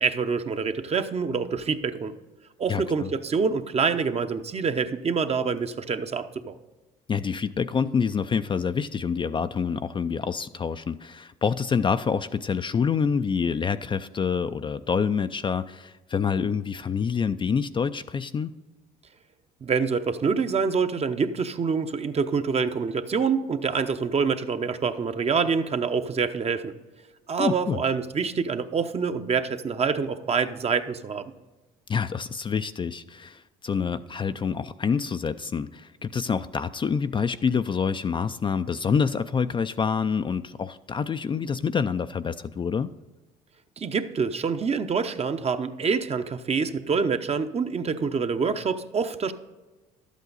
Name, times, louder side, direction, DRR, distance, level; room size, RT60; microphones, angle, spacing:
voice 1, 0.0-2.1 2.6-6.6 19.6-26.7 27.3-31.3 43.8-49.3, right 5 dB, 35° right, 9 dB, 0.8 m, -26 dB
voice 2, 2.7-3.1 7.1-18.5 27.4-27.8 31.9-42.9, left 6 dB, 25° left, 11 dB, 0.4 m, -27 dB
12.0 x 8.3 x 4.0 m, 1.2 s
hypercardioid pair, 70°, 18 cm